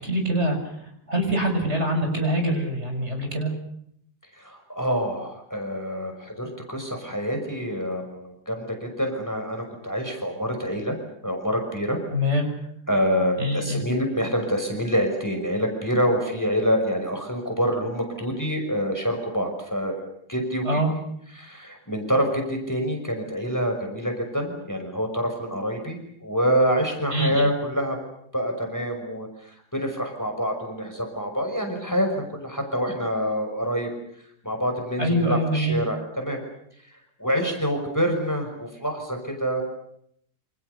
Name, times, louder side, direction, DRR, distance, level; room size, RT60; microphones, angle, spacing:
voice 1, 0.0-3.5 12.1-12.5 13.4-13.8 20.6-20.9 27.1-27.5 35.0-35.8, equal, 40° right, 4 dB, 7.0 m, -24 dB
voice 2, 4.3-10.9 11.2-12.0 12.9-20.0 20.3-20.8 21.4-28.0 28.3-33.9 34.4-36.4 37.2-39.6, equal, 10° left, 4 dB, 5.7 m, -26 dB
28.5 x 27.0 x 6.8 m, 0.72 s
omnidirectional pair, 1.7 m